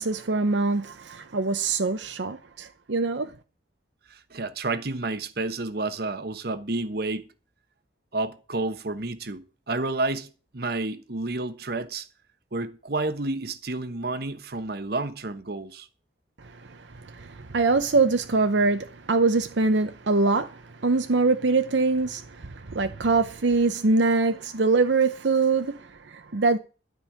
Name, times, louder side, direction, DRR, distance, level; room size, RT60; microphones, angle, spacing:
voice 1, 0.0-3.3 16.5-26.6, right 3 dB, 80° right, 0.8 m, -24 dB
voice 2, 4.1-7.3 8.1-12.1 12.5-15.9, right 2 dB, 60° right, 1.1 m, -30 dB
12.5 x 5.4 x 8.7 m
head